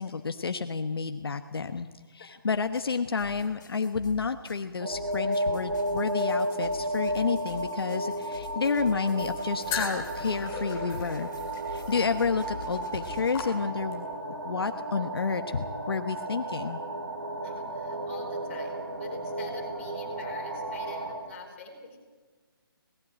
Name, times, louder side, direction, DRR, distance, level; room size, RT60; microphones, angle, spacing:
voice 1, 0.0-11.3 11.7-14.1 14.4-16.8, left 5 dB, 75° left, 8 dB, 1.1 m, -30 dB
sound 1, 2.6-13.5, left 4 dB, 50° left, 3.5 m, -46 dB
sound 2, 4.8-21.2, right 1 dB, 55° right, 5.1 m, -33 dB
sound 3, 9.7-14.1, left 6 dB, 15° left, 2.3 m, -38 dB
voice 2, 17.4-22.0, left 5 dB, 30° left, 1 dB, 4.5 m, -46 dB
18.5 x 16.0 x 9.0 m, 1.4 s
hypercardioid pair, 175°, 13 cm